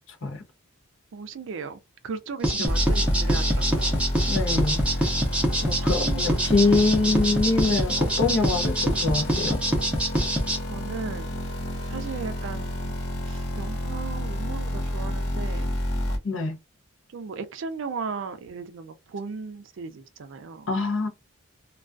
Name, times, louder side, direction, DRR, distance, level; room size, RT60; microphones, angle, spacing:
voice 1, 1.1-4.0 5.5-6.9 10.6-11.4 11.8-12.9 13.2-15.8 16.1-16.2 17.1-20.7, right 5 dB, 60° right, 0.4 m, -37 dB
sound 1, 2.4-10.6, right 1 dB, 5° right, 0.5 m, -25 dB
sound 2, 2.7-16.2, equal, 75° left, 1.1 m, -29 dB
voice 2, 4.3-5.1 5.6-9.6 16.2-16.6 20.7-21.1, left 3 dB, 55° left, 0.6 m, -24 dB
2.2 x 2.2 x 2.4 m
head